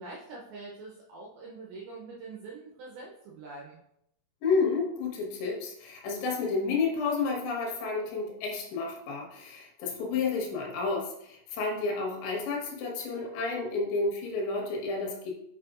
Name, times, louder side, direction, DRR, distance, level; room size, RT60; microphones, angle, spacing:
voice 1, 0.0-3.8, right 3 dB, 75° right, -3 dB, 2.3 m, -44 dB
voice 2, 4.4-15.3, left 4 dB, 75° left, -1 dB, 3.4 m, -31 dB
7.5 x 5.3 x 2.4 m, 0.77 s
omnidirectional pair, 5.3 m